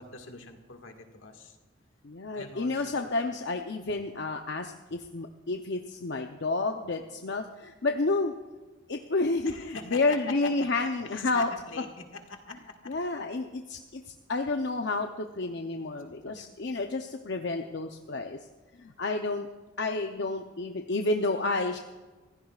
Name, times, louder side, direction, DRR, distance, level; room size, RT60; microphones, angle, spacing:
voice 1, 0.0-1.6 2.3-2.8 3.9-4.0 9.4-10.7 11.0-13.2 16.3-16.5, left 3 dB, 80° left, 4 dB, 1.8 m, -43 dB
voice 2, 2.0-8.3 8.9-11.5 12.9-14.0 14.3-18.4 18.8-19.5 19.8-21.8, left 3 dB, 60° left, 4 dB, 0.7 m, -30 dB
26.0 x 15.5 x 2.4 m, 1.3 s
head